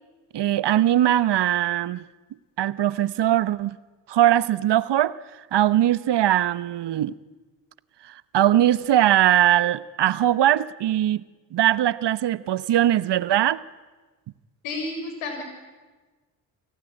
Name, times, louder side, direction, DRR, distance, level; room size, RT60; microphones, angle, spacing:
voice 1, 0.3-2.0 2.6-3.8 4.1-5.2 5.5-7.2 8.3-11.2 11.5-13.6, right 12 dB, 60° right, 1.1 m, -20 dB
voice 2, 14.6-15.4, left 2 dB, 75° left, 6.7 m, -31 dB
29.0 x 18.5 x 10.0 m
hypercardioid pair, 45°, 47 cm